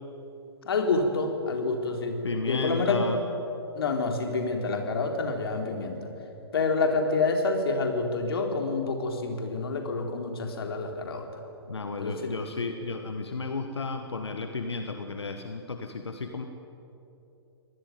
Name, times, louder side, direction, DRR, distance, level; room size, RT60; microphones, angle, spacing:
voice 1, 0.6-3.0 3.7-6.1 6.5-11.2 12.0-12.4, left 3 dB, 60° left, 4 dB, 4.1 m, -28 dB
voice 2, 2.2-3.2 11.7-16.4, left 3 dB, 80° left, 6 dB, 1.7 m, -33 dB
25.0 x 19.0 x 9.6 m, 3.0 s
figure-of-eight pair, 120°, 14 cm